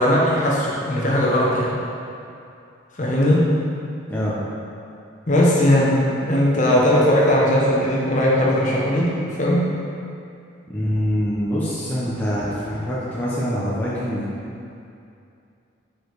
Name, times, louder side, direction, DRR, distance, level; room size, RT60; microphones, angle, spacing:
voice 1, 0.0-1.7 2.9-3.5 5.3-9.6, left 1 dB, 35° left, -5 dB, 1.0 m, -18 dB
voice 2, 10.7-14.3, equal, 10° left, -9 dB, 0.7 m, -24 dB
5.0 x 4.6 x 4.6 m, 2.6 s
head